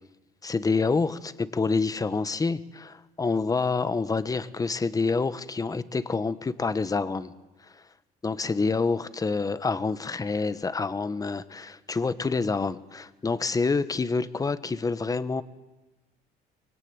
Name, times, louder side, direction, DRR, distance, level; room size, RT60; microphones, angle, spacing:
voice 1, 0.4-7.3 8.2-15.4, left 4 dB, 20° left, 14 dB, 1.2 m, -27 dB
25.0 x 23.0 x 9.7 m, 1.1 s
cardioid pair, 110°, 17 cm